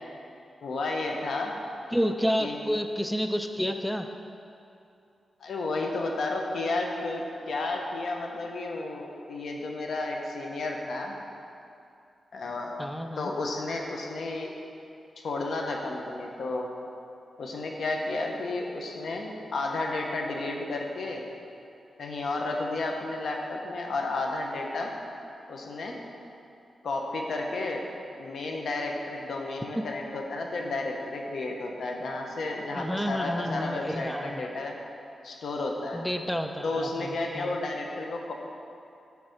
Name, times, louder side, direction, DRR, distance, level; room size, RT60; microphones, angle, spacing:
voice 1, 0.6-1.6 2.4-2.5 5.4-11.1 12.3-12.8 13.2-14.5 15.2-16.7 17.4-21.3 22.0-24.9 25.5-26.0 26.8-27.8 28.2-34.7 35.2-36.0 36.6-38.3, left 2 dB, 75° left, 1 dB, 0.9 m, -32 dB
voice 2, 1.9-4.1 12.8-13.3 32.7-34.5 35.9-37.6, equal, 5° left, 6 dB, 0.4 m, -30 dB
9.5 x 3.4 x 6.5 m, 2.6 s
cardioid pair, 95°, 0 cm